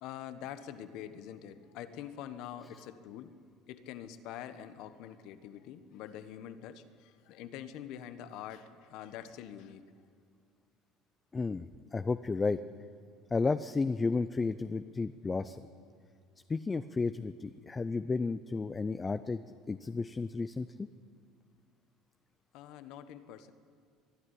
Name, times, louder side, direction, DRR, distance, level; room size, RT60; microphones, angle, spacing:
voice 1, 0.0-3.3 3.7-9.8 22.5-23.5, left 10 dB, 65° left, 11 dB, 1.2 m, -45 dB
voice 2, 11.3-12.6 13.3-15.7 16.5-19.4 19.7-20.9, left 4 dB, 20° left, 12 dB, 0.5 m, -32 dB
22.5 x 12.0 x 9.8 m, 2.2 s
cardioid pair, 130°, 0 cm